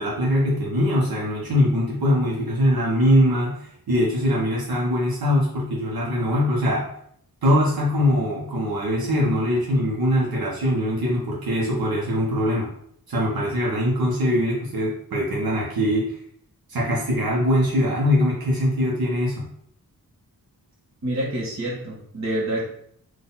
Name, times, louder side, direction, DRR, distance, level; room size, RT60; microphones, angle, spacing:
voice 1, 0.0-6.9 7.4-12.7 13.1-16.2 16.7-19.5, equal, 80° right, -4 dB, 1.2 m, -22 dB
voice 2, 21.0-22.7, right 1 dB, 50° right, -4 dB, 1.5 m, -27 dB
4.0 x 2.7 x 4.0 m, 0.66 s
wide cardioid pair, 145°, 36 cm